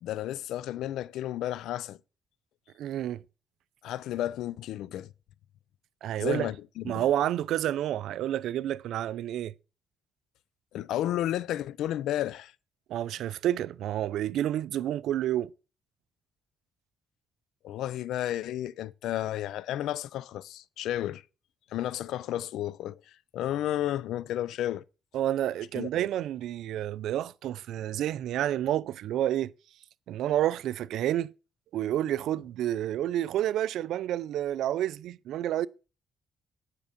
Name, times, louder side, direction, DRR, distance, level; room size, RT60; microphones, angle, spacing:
voice 1, 0.0-2.0 3.8-5.1 6.2-7.1 10.7-12.5 17.6-21.2 21.7-24.9 25.7-25.9, left 13 dB, 85° left, 0.5 m, -32 dB
voice 2, 2.8-3.2 6.0-6.5 6.8-9.5 12.9-15.5 25.1-29.5 30.1-31.3 31.7-35.7, right 12 dB, 80° right, 0.5 m, -29 dB
9.7 x 6.7 x 5.2 m
cardioid pair, 90°, 0 cm